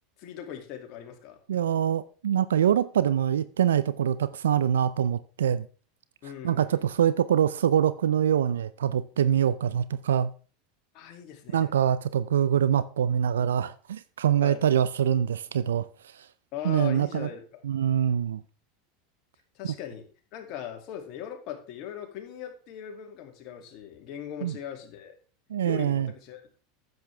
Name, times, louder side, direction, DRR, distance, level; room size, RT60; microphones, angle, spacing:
voice 1, 0.2-1.4 6.2-6.9 10.9-11.7 14.4-14.7 16.5-17.6 19.5-20.1 20.3-25.1 25.6-26.4, left 10 dB, 55° left, 2.6 m, -39 dB
voice 2, 1.5-5.7 6.4-10.3 11.5-15.9 16.1-16.3 16.6-17.3 17.6-18.4 24.4-24.6 25.5-26.1, right 9 dB, 85° right, 0.5 m, -24 dB
10.5 x 8.0 x 3.5 m
hypercardioid pair, 95°, 0 cm